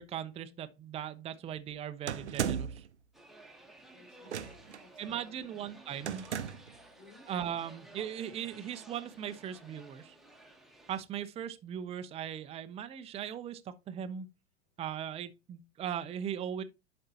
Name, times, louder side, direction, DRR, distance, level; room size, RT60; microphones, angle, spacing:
voice 1, 0.0-2.9 5.0-6.3 7.3-10.1 10.9-14.3 14.8-16.6, right 9 dB, 20° right, 0.5 m, -39 dB
sound 1, 2.1-2.9 4.3-4.8 6.1-6.8, right 8 dB, 85° right, 0.7 m, -35 dB
sound 2, 3.1-11.0, right 1 dB, ahead, 1.3 m, -55 dB
voice 2, 3.9-5.7 7.0-7.2, left 2 dB, 45° left, 3.6 m, -59 dB
11.0 x 4.3 x 2.8 m
figure-of-eight pair, 90°, 33 cm